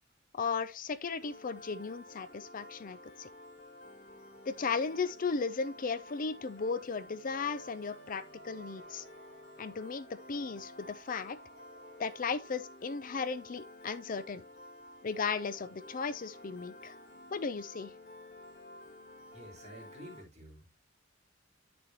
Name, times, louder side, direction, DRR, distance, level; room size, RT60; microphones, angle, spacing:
voice 1, 0.3-3.3 4.5-9.0 9.6-11.4 12.0-14.4 15.0-17.0 17.3-17.9, left 5 dB, 45° left, 0.5 m, -36 dB
Piano, 1.2-20.2, left 1 dB, 65° left, 2.3 m, -52 dB
Wind instrument woodwind instrument, 7.2-12.7, right 3 dB, 65° right, 2.7 m, -60 dB
voice 2, 19.3-20.7, equal, 35° right, 4.0 m, -50 dB
9.2 x 6.8 x 2.9 m
head